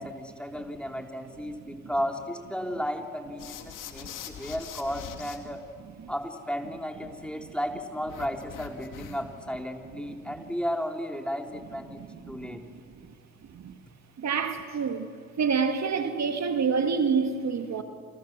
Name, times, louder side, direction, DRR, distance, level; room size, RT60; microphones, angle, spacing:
voice 1, 0.0-5.6 6.1-12.0 12.3-12.6, equal, 5° left, 3.6 m, -34 dB
sound 1, 3.4-5.4 8.1-9.4, left 9 dB, 75° left, 2.5 m, -42 dB
voice 2, 11.9-12.8 13.5-13.8 14.2-15.1 15.4-17.8, right 5 dB, 55° right, 2.1 m, -28 dB
29.5 x 26.0 x 7.5 m
supercardioid pair, 60°, 32 cm